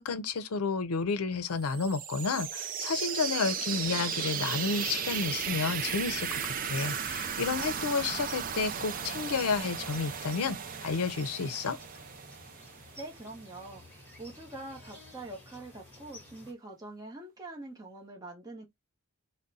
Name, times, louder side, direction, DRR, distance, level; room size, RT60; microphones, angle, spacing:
voice 1, 0.0-11.8, left 4 dB, 90° left, 0.5 m, -31 dB
sound 1, 1.6-13.3, right 8 dB, 40° right, 0.4 m, -35 dB
sound 2, 6.4-16.5, left 1 dB, 10° left, 1.6 m, -52 dB
voice 2, 13.0-18.7, right 2 dB, 15° right, 0.8 m, -44 dB
3.6 x 2.1 x 4.0 m
head